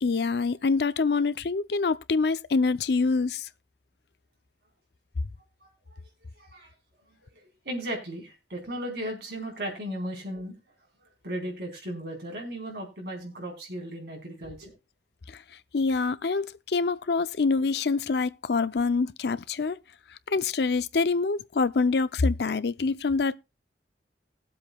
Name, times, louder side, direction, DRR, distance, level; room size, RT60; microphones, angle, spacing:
voice 1, 0.0-3.5 15.7-19.8 20.3-23.4, left 4 dB, 70° left, 0.5 m, -25 dB
voice 2, 5.6-6.0 6.4-6.7 7.6-10.5 11.0-14.7, right 1 dB, 65° right, 4.4 m, -36 dB
20.0 x 7.7 x 2.3 m
head